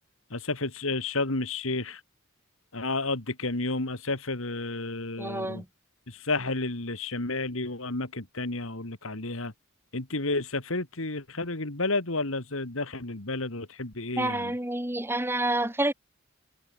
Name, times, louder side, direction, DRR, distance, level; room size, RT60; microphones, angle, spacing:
voice 1, 0.3-2.0 2.7-5.6 6.1-9.5 9.9-14.5, left 2 dB, 70° left, 2.5 m, -31 dB
voice 2, 5.2-5.6 14.2-15.9, right 1 dB, 10° right, 3.0 m, -28 dB
head